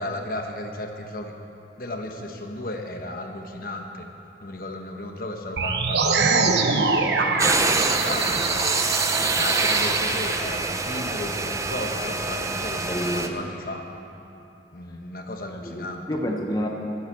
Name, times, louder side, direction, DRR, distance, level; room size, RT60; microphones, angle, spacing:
voice 1, 0.0-1.3 1.8-4.1 4.4-6.8 7.2-8.8 9.3-13.8 14.7-16.0, left 1 dB, 50° left, 3 dB, 1.1 m, -34 dB
sound 1, 5.6-10.0, right 4 dB, 70° right, 0.9 m, -24 dB
sound 2, 7.4-13.3, right 3 dB, 15° right, 0.6 m, -25 dB
voice 2, 12.8-13.5 15.6-16.7, equal, 20° left, 0 dB, 0.9 m, -29 dB
12.5 x 11.5 x 7.4 m, 2.9 s
head